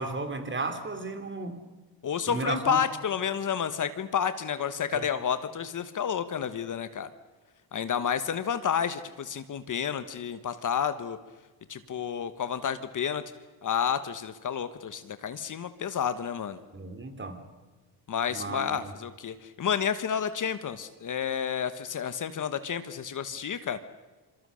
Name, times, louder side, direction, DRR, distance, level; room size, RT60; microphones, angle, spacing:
voice 1, 0.0-1.6 2.3-2.8 4.9-5.1 16.7-17.4 18.3-18.9, right 3 dB, 25° right, 7 dB, 3.4 m, -34 dB
voice 2, 2.0-7.1 7.7-11.2 11.7-13.2 13.6-16.6 18.1-23.8, left 8 dB, 45° left, 12 dB, 1.3 m, -30 dB
26.5 x 24.5 x 6.5 m, 1.3 s
cardioid pair, 110°, 44 cm